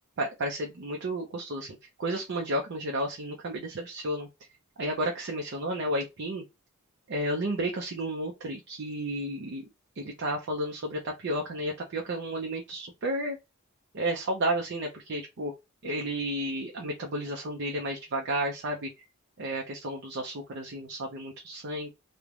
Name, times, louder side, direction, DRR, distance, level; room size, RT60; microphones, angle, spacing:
voice 1, 0.2-4.3 4.8-6.4 7.1-9.6 10.0-13.4 13.9-15.5 15.8-19.0 19.4-21.9, right 1 dB, 50° right, 0.5 m, -32 dB
3.1 x 2.1 x 2.4 m
head